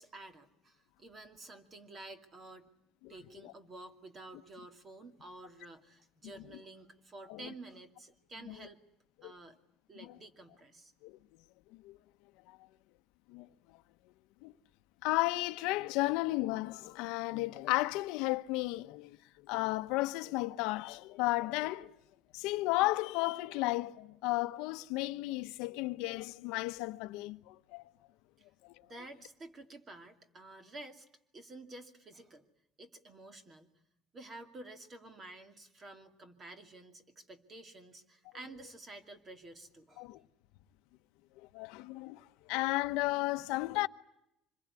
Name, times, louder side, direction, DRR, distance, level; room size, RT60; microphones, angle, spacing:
voice 1, 0.0-2.7 3.1-8.8 9.2-9.6 9.9-10.9 28.4-28.5 28.8-31.1 31.3-32.5 32.8-33.7 34.1-40.1, right 2 dB, 25° right, 2.5 m, -51 dB
voice 2, 3.0-3.5 7.3-7.5 8.5-8.7 9.2-9.3 10.0-10.2 11.0-11.2 11.7-12.0 12.5-12.6 13.3-13.5 14.4-14.5 15.0-21.9 22.3-27.8 28.6-28.7 40.0-40.2 41.4-43.9, left 19 dB, 90° left, 1.0 m, -34 dB
26.0 x 21.5 x 9.7 m
cardioid pair, 150°, 0 cm